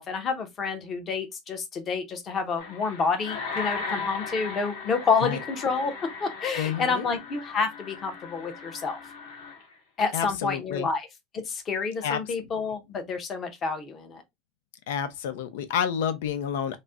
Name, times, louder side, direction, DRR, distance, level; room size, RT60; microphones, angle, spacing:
voice 1, 0.0-5.9 6.2-9.0 10.0-11.1 11.3-14.2, left 5 dB, 25° left, 0.7 m, -29 dB
sound 1, 2.6-9.7, left 4 dB, 65° left, 1.6 m, -37 dB
voice 2, 6.6-7.1 10.1-10.9 12.0-12.2 14.9-16.8, left 8 dB, 90° left, 0.6 m, -29 dB
4.0 x 2.1 x 3.5 m
cardioid pair, 175°, 0 cm